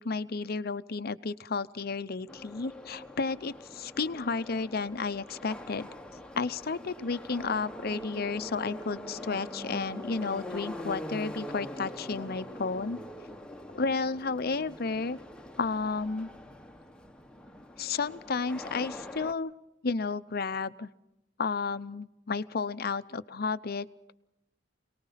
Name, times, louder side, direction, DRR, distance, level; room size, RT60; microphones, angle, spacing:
voice 1, 0.0-5.9 6.4-13.0 13.7-15.2 15.6-16.3 17.8-19.5 19.8-20.9 21.4-23.9, left 4 dB, 55° left, 13 dB, 0.7 m, -32 dB
Subway metro underground, 2.3-19.3, left 1 dB, 5° left, 1.1 m, -43 dB
27.0 x 19.0 x 5.7 m, 0.87 s
head